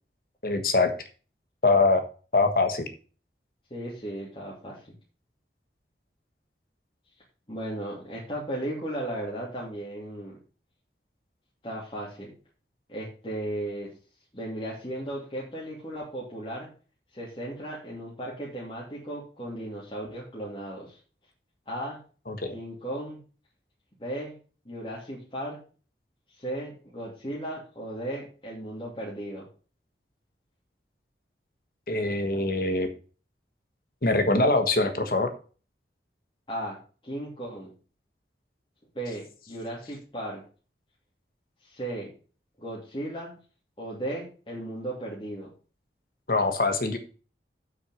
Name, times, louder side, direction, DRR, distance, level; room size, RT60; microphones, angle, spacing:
voice 1, 0.4-0.9 1.6-2.0 2.3-2.9 22.3-22.5 31.9-32.9 34.0-35.3 46.3-47.0, left 3 dB, 55° left, 7 dB, 1.4 m, -23 dB
voice 2, 3.7-4.8 7.5-10.4 11.6-12.3 12.9-13.9 14.3-16.7 17.1-21.0 21.7-22.0 22.5-23.2 24.0-24.4 24.6-25.6 26.3-29.4 36.5-36.8 37.0-37.7 38.9-40.4 41.6-42.1 42.6-43.4 43.8-45.5, right 1 dB, 30° left, -6 dB, 2.7 m, -36 dB
8.2 x 6.2 x 6.3 m, 0.37 s
head